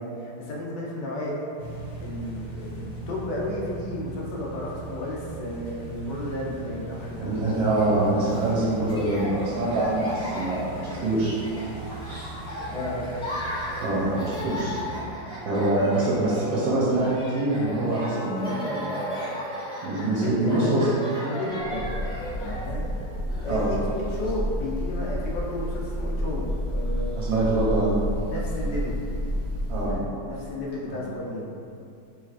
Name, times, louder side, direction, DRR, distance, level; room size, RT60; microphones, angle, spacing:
voice 1, 0.0-1.5 2.0-7.6 12.7-13.1 15.0-15.1 20.1-20.9 21.3-21.9 22.4-22.9 23.4-26.4 26.7-27.1 28.3-29.0 29.9-31.5, left 1 dB, 75° left, -4 dB, 1.2 m, -33 dB
sound 1, 1.6-15.0, right 2 dB, 45° left, 1.3 m, -39 dB
voice 2, 7.2-11.3 12.0-12.3 13.8-14.7 15.5-18.9 19.8-20.9 23.5-23.7 27.1-28.0 29.7-29.9 30.9-31.0, right 2 dB, 85° right, -7 dB, 1.4 m, -25 dB
Laughter, 7.5-24.3, equal, 5° left, 0.9 m, -36 dB
Breathing / Bird, 21.6-30.1, equal, 60° right, 1.2 m, -30 dB
3.2 x 3.1 x 2.4 m, 2.5 s
omnidirectional pair, 2.0 m